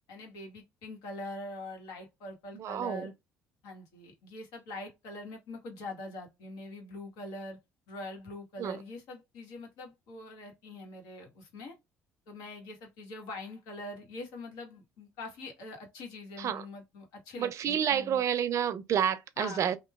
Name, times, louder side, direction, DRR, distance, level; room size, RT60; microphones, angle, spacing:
voice 1, 0.1-3.1 3.6-7.6 7.9-11.8 12.3-18.2 19.4-19.8, left 2 dB, 75° left, 1.2 m, -43 dB
voice 2, 2.5-3.1 8.6-8.8 16.4-16.6 17.4-19.8, right 9 dB, 50° right, 0.5 m, -29 dB
3.0 x 2.2 x 2.2 m
supercardioid pair, 80°, 6 cm